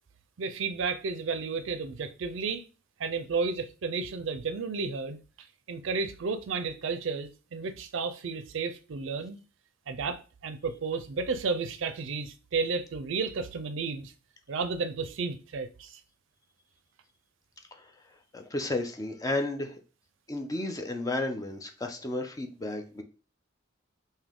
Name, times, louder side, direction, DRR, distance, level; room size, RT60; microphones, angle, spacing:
voice 1, 0.4-2.7 3.0-9.4 9.9-14.1 14.5-16.0, right 4 dB, 70° right, 0.4 m, -32 dB
voice 2, 17.7-19.8 20.3-23.0, left 2 dB, 20° left, 0.4 m, -33 dB
3.7 x 2.7 x 3.5 m
head